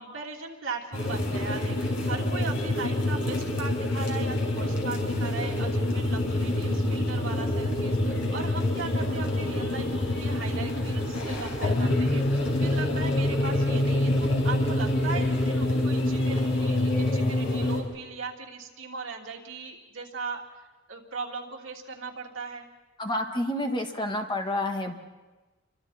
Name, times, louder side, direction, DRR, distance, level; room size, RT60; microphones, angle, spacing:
voice 1, 0.0-20.4 20.9-22.6, right 4 dB, 70° right, -1 dB, 3.0 m, -38 dB
sound 1, 0.9-17.8, left 1 dB, 70° left, 4.8 m, -26 dB
voice 2, 23.0-25.0, left 1 dB, 25° left, 4 dB, 1.7 m, -29 dB
29.5 x 24.5 x 4.3 m, 1.2 s
head